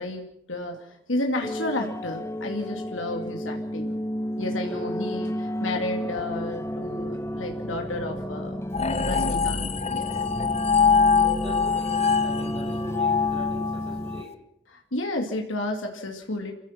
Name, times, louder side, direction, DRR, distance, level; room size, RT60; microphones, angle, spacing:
voice 1, 0.0-3.9 4.4-8.6 9.1-10.1 14.7-16.5, left 1 dB, 90° left, 3 dB, 2.6 m, -32 dB
sound 1, 1.4-14.2, equal, 15° left, 0.7 m, -32 dB
voice 2, 4.4-5.1 8.9-9.4 11.3-14.4, left 2 dB, 25° right, 3 dB, 5.8 m, -42 dB
sound 2, 8.7-14.2, left 5 dB, 30° left, 1.1 m, -24 dB
28.0 x 16.0 x 6.0 m, 0.75 s
head